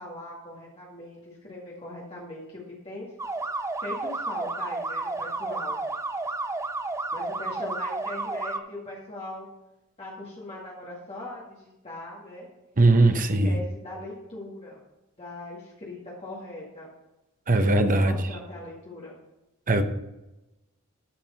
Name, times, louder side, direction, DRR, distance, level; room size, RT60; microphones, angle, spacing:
voice 1, 0.0-3.1 3.8-5.8 7.1-9.5 10.0-12.5 13.0-14.8 15.2-16.9 17.6-19.2, left 1 dB, 30° left, -5 dB, 2.1 m, -40 dB
sound 1, 3.2-8.6, right 3 dB, 15° right, 0.5 m, -31 dB
voice 2, 12.8-13.6 17.5-18.2 19.7-19.8, right 2 dB, 40° right, 7 dB, 0.9 m, -20 dB
13.0 x 4.9 x 5.7 m, 0.97 s
head